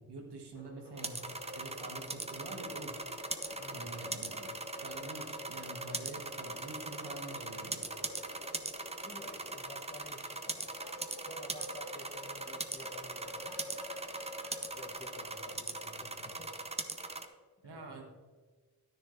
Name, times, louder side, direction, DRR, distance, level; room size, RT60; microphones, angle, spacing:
voice 1, 0.0-3.0 3.7-4.5 4.8-7.8 17.6-18.0, right 2 dB, 85° right, 1 dB, 1.8 m, -47 dB
sound 1, 0.5-17.2, left 1 dB, 75° left, 2.1 m, -49 dB
sound 2, 1.0-17.3, right 2 dB, 15° right, 0.7 m, -41 dB
voice 2, 3.6-4.0 9.0-10.7 11.2-13.6 14.6-16.5 17.6-18.0, left 1 dB, 25° left, 5 dB, 1.3 m, -52 dB
10.0 x 10.0 x 3.3 m, 1.4 s
cardioid pair, 75°, 39 cm